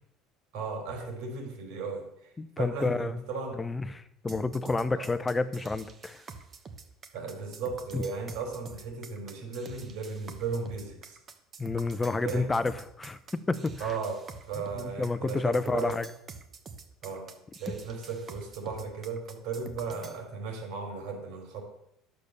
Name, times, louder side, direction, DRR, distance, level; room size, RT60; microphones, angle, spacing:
voice 1, 0.5-2.1 2.6-3.6 4.9-5.1 7.1-11.2 12.2-12.5 13.8-14.2 14.5-16.0 17.0-17.3 17.6-21.6, right 4 dB, 70° right, 3 dB, 3.7 m, -36 dB
voice 2, 2.4-3.2 3.6-6.2 7.9-8.0 11.6-13.2 13.5-13.9 14.8-16.1, left 3 dB, 10° left, 13 dB, 0.6 m, -30 dB
sound 1, 4.3-20.2, right 4 dB, 25° right, 1.0 m, -47 dB
11.0 x 6.8 x 6.7 m, 0.78 s
cardioid pair, 155°, 0 cm